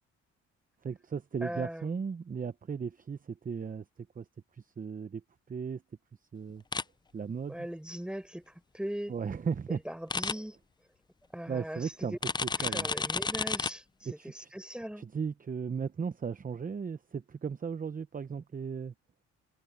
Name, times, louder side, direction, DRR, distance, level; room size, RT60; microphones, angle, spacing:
voice 1, 0.8-3.8 4.2-4.3 4.5-5.2 5.5-5.8 6.3-6.6 7.1-7.6 9.1-9.8 11.5-12.2 12.6-12.9 14.0-14.5 15.0-18.9, right 6 dB, 30° right, 0.8 m, -36 dB
voice 2, 1.4-2.0 7.5-9.1 9.7-10.6 11.3-12.2 12.6-15.0, equal, 5° right, 4.4 m, -40 dB
sound 1, 6.7-6.8 10.1-10.3 12.2-13.7, left 4 dB, 15° left, 0.4 m, -31 dB
cardioid pair, 90°, 30 cm